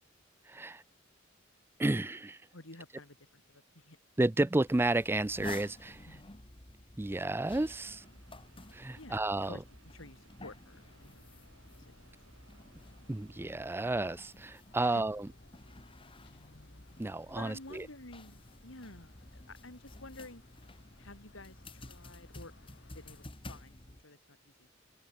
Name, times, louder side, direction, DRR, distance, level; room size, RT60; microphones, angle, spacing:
voice 1, 0.5-0.8 1.8-2.4 4.2-6.1 7.0-8.1 8.7-9.6 13.1-15.3 17.0-17.9, right 2 dB, 10° right, 0.4 m, -31 dB
voice 2, 2.5-4.0 6.0-6.2 9.0-9.2 9.5-11.3 11.8-12.0 14.8-15.0 17.4-20.4 21.0-22.5 22.9-24.7, left 2 dB, 90° left, 4.7 m, -51 dB
sound 1, 4.7-24.0, left 2 dB, 25° left, 2.0 m, -52 dB
sound 2, 7.6-14.1, right 3 dB, 75° right, 2.8 m, -66 dB
sound 3, 10.7-23.3, left 3 dB, 65° left, 1.3 m, -64 dB
head